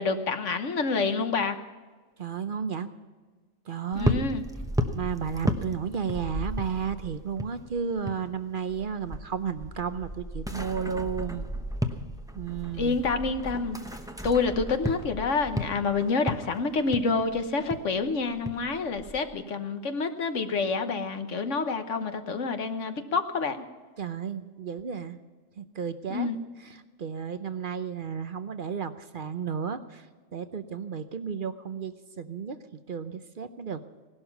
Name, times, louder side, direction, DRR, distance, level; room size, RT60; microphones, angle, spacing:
voice 1, 0.0-1.6 3.9-4.4 12.8-13.8 14.2-23.6 26.1-26.4, left 4 dB, 65° left, 8 dB, 1.4 m, -28 dB
voice 2, 2.2-2.9 3.7-4.2 4.9-11.5 12.3-13.0 24.0-25.2 25.6-26.3 26.6-30.1 30.3-32.6 32.9-33.8, right 6 dB, 50° right, 11 dB, 0.8 m, -33 dB
sound 1, 3.9-8.3 8.5-19.3, equal, 5° right, 0.7 m, -34 dB
18.0 x 12.0 x 5.9 m, 1.4 s
omnidirectional pair, 1.4 m